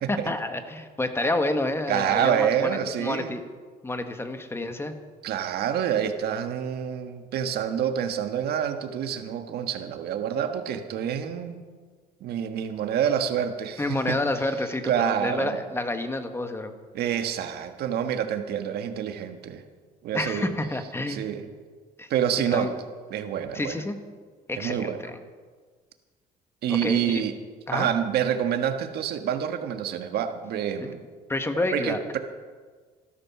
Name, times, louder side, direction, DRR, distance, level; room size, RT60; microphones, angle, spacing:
voice 1, 0.1-3.4 3.8-4.9 13.8-16.7 20.1-21.3 22.0-22.1 22.5-22.7 23.5-24.0 24.5-25.2 26.7-27.2 27.7-27.9 30.8-30.9 31.3-32.0, left 2 dB, 15° left, 8 dB, 1.4 m, -29 dB
voice 2, 1.9-3.3 5.2-11.6 12.2-14.2 14.9-15.6 16.9-19.6 20.0-20.5 21.1-21.4 22.1-22.7 23.1-23.8 24.5-25.0 26.6-27.3 27.7-31.0 31.5-32.2, right 9 dB, 70° right, 7 dB, 1.5 m, -27 dB
14.5 x 13.0 x 6.1 m, 1.5 s
cardioid pair, 110°, 17 cm